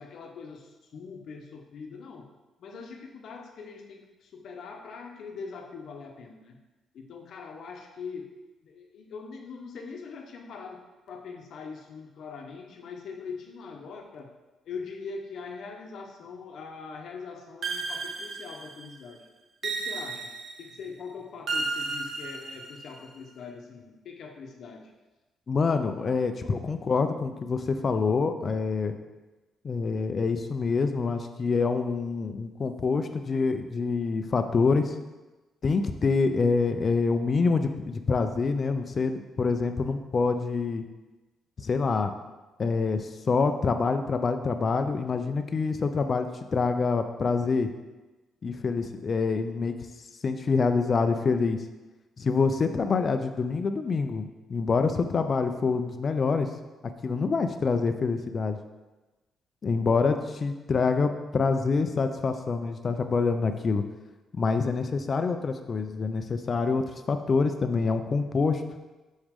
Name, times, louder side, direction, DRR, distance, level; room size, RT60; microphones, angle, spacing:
voice 1, 0.0-2.3 2.6-6.6 6.9-8.3 8.6-10.8 11.1-14.3 14.7-19.2 19.6-20.3 20.6-24.9, left 5 dB, 65° left, 2 dB, 0.9 m, -42 dB
electronic bells, 17.6-19.0 19.6-20.8 21.5-23.0, right 3 dB, 55° right, 0.7 m, -33 dB
voice 2, 25.5-29.0 29.6-35.0 35.6-40.8 41.6-42.1 42.6-47.7 48.4-49.8 50.2-51.6 52.2-56.5 57.0-58.6 59.6-63.8 64.4-68.6, left 4 dB, 40° left, 8 dB, 0.5 m, -26 dB
6.3 x 4.9 x 3.6 m, 1.1 s
cardioid pair, 90°, 0 cm